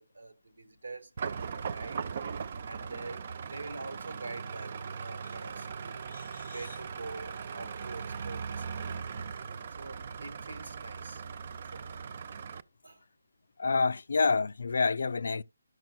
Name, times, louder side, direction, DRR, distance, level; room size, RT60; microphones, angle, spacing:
voice 1, 0.0-2.1 2.7-6.1 6.5-9.1 9.8-11.2 11.7-12.0 12.8-13.0, right 3 dB, 80° right, 1.2 m, -45 dB
sound 1, 1.2-12.6, right 6 dB, 40° right, 0.4 m, -39 dB
voice 2, 6.1-6.6 13.6-15.4, left 4 dB, 65° left, 0.3 m, -28 dB
12.0 x 6.1 x 2.2 m
figure-of-eight pair, 160°, 0 cm